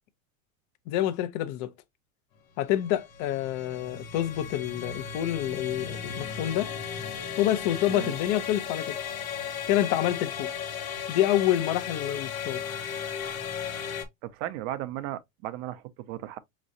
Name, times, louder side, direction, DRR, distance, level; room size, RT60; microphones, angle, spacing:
voice 1, 0.9-1.7 2.6-6.7 7.4-9.0 9.7-10.5 11.1-12.6, left 12 dB, 50° left, 0.8 m, -27 dB
sound 1, 2.7-14.1, left 7 dB, 80° left, 1.2 m, -36 dB
voice 2, 14.2-16.4, right 13 dB, 60° right, 0.8 m, -36 dB
5.2 x 3.1 x 2.6 m
supercardioid pair, 115°, 40 cm